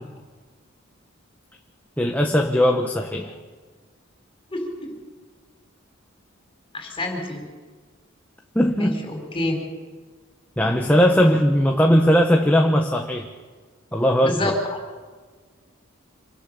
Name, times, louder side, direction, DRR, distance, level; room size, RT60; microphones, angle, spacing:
voice 1, 2.0-3.3 8.5-9.0 10.6-13.3 13.9-14.5, equal, 10° left, 2 dB, 1.1 m, -19 dB
voice 2, 4.5-4.9 6.7-7.4 8.8-8.9 9.3-9.6 14.2-14.8, left 1 dB, 25° left, 3 dB, 4.9 m, -27 dB
26.5 x 18.5 x 6.9 m, 1.5 s
head